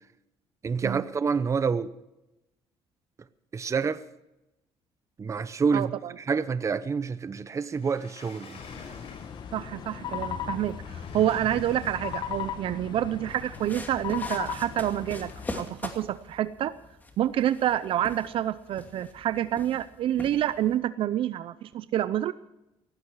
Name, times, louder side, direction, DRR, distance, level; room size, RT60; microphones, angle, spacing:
voice 1, 0.6-1.9 3.5-4.0 5.2-5.9 6.3-8.6, right 5 dB, 30° right, 0.9 m, -27 dB
voice 2, 5.7-6.1 9.5-16.7 17.2-22.3, right 11 dB, 60° right, 0.6 m, -28 dB
Sliding door, 7.7-9.7 10.6-12.8, left 4 dB, 65° left, 6.0 m, -50 dB
sound 1, 8.6-15.6, left 8 dB, 50° left, 1.3 m, -37 dB
sound 2, 13.3-20.8, left 2 dB, 15° left, 2.6 m, -43 dB
18.0 x 15.5 x 4.8 m
cardioid pair, 115°, 10 cm